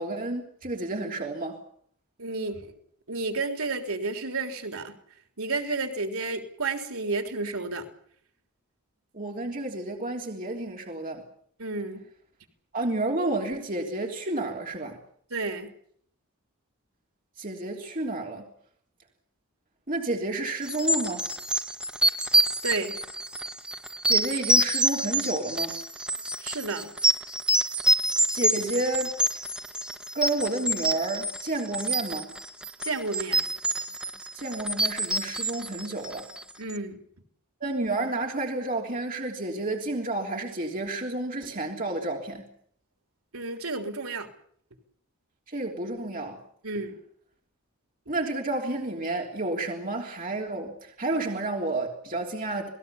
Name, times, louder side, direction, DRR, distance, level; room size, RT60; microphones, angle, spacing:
voice 1, 0.0-1.6 9.1-11.2 12.7-15.0 17.4-18.5 19.9-21.3 24.0-25.8 28.3-29.4 30.1-32.3 34.3-36.3 37.6-42.4 45.5-46.4 48.1-52.7, right 2 dB, 40° right, 1 dB, 3.3 m, -30 dB
voice 2, 2.2-2.7 3.1-5.0 5.4-7.9 11.6-12.1 15.3-15.7 22.6-23.0 26.4-27.0 32.8-33.5 36.6-37.0 43.3-44.3 46.6-47.0, right 3 dB, 80° right, 6 dB, 3.6 m, -31 dB
sound 1, 20.7-36.5, right 1 dB, 5° right, 0.9 m, -27 dB
28.0 x 20.0 x 7.2 m, 0.64 s
head